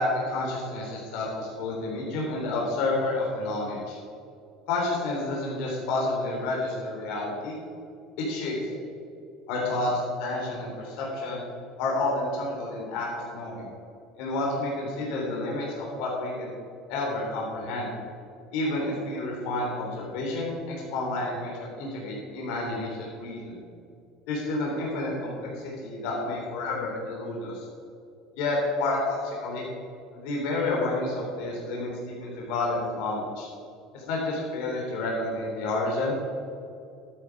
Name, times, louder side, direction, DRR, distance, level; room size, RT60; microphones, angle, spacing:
voice 1, 0.0-4.0 4.7-7.6 8.2-8.8 9.5-11.4 11.8-13.7 14.2-16.5 16.9-17.9 18.5-23.6 24.3-27.6 28.3-29.7 30.1-33.5 33.9-36.1, left 2 dB, 70° left, -3 dB, 3.6 m, -30 dB
12.5 x 10.0 x 4.8 m, 2.4 s
cardioid pair, 145°, 0 cm